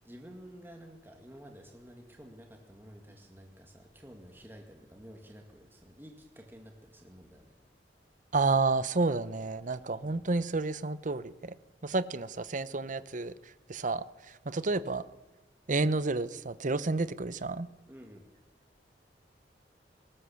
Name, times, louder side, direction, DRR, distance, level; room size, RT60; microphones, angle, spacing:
voice 1, 0.0-7.5 10.0-10.2 17.9-18.3, equal, 10° right, 2.0 m, -51 dB
voice 2, 8.3-11.5 11.8-13.3 13.7-15.0 15.7-17.7, right 3 dB, 45° right, 0.8 m, -30 dB
20.5 x 18.0 x 7.1 m
head